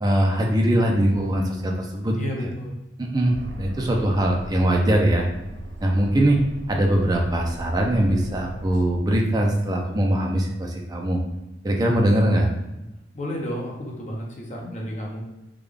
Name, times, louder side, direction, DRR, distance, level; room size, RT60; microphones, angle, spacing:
voice 1, 0.0-2.2 3.0-5.3 5.8-6.4 6.7-11.2 11.6-12.5, right 1 dB, 20° right, 0 dB, 0.5 m, -21 dB
voice 2, 2.2-2.8 13.1-15.2, equal, 40° left, -2 dB, 0.8 m, -32 dB
Aircraft, 3.3-8.9, right 1 dB, 75° right, 0.4 m, -39 dB
3.7 x 2.3 x 3.4 m, 0.97 s
head